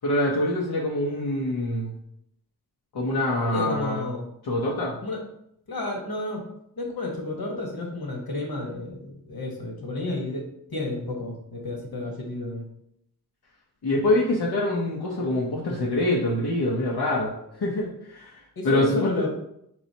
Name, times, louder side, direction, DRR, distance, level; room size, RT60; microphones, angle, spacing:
voice 1, 0.0-1.9 2.9-4.1 4.4-5.0 13.8-17.3 17.6-18.4 18.6-19.3, left 1 dB, 90° left, -4 dB, 0.8 m, -25 dB
voice 2, 3.5-4.3 5.0-5.2 5.7-6.4 6.8-10.4 10.7-12.6 18.6-19.3, left 2 dB, 70° left, 1 dB, 1.2 m, -31 dB
4.7 x 4.0 x 2.8 m, 0.76 s
wide cardioid pair, 65°, 37 cm